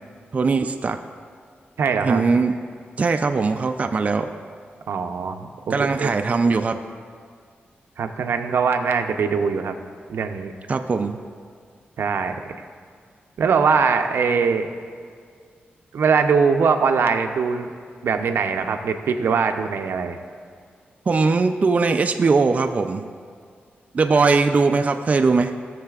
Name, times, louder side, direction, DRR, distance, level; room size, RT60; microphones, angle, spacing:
voice 1, 0.3-1.0 2.0-2.6 3.0-4.3 5.7-6.8 10.7-11.2 21.1-23.1 23.9-25.5, right 4 dB, 35° right, 6 dB, 0.3 m, -20 dB
voice 2, 1.8-2.2 4.9-6.1 8.0-9.8 10.1-10.5 12.0-12.4 13.4-14.7 15.9-17.7 18.0-20.2, right 5 dB, 80° right, 6 dB, 0.6 m, -21 dB
16.5 x 6.6 x 2.4 m, 2.1 s
wide cardioid pair, 135°, 4 cm